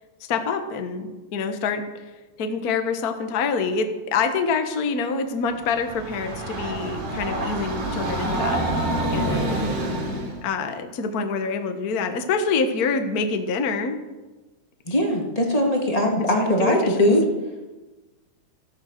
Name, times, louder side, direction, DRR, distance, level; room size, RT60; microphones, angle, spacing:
voice 1, 0.3-2.1 2.4-8.6 9.1-9.5 10.4-14.0 16.2-17.1, left 5 dB, 65° left, 7 dB, 0.9 m, -26 dB
Train, 5.5-10.4, right 1 dB, 85° right, 4.9 m, -27 dB
voice 2, 9.1-9.5 14.9-17.2, left 1 dB, 10° left, 0 dB, 2.1 m, -21 dB
16.5 x 12.0 x 6.7 m, 1.2 s
omnidirectional pair, 4.0 m